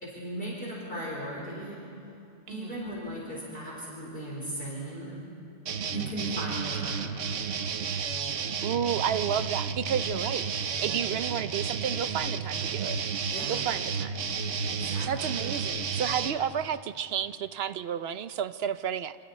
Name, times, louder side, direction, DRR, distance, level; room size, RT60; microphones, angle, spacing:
voice 1, 0.0-1.8 2.5-5.2 5.9-7.2 13.3-13.5 14.7-15.4, equal, 50° left, -5 dB, 4.4 m, -37 dB
sound 1, 5.7-16.3, right 6 dB, 90° right, 1.3 m, -32 dB
voice 2, 8.6-13.0 13.5-14.2 15.0-19.2, right 8 dB, 60° right, 13 dB, 0.9 m, -31 dB
28.5 x 25.5 x 4.3 m, 2.8 s
omnidirectional pair, 1.2 m